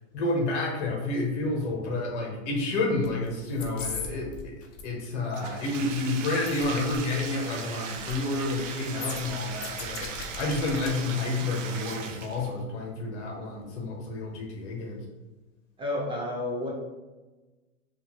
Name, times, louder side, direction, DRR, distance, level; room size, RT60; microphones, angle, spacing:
voice 1, 0.1-4.5 4.8-10.1 10.4-15.0, left 2 dB, 65° left, 0 dB, 1.0 m, -30 dB
sound 1, 3.0-3.3 3.5-4.1 4.3-4.8 6.5-6.6 6.9-7.0 8.0-8.2 8.5-8.6 9.0-10.9 11.3-11.4, left 5 dB, 40° left, 0.7 m, -37 dB
Bathtub (filling or washing), 5.3-12.6, right 6 dB, 75° right, 0.5 m, -38 dB
voice 2, 15.8-16.7, left 1 dB, 15° right, -3 dB, 0.3 m, -30 dB
2.8 x 2.4 x 2.9 m, 1.2 s
hypercardioid pair, 100°, 38 cm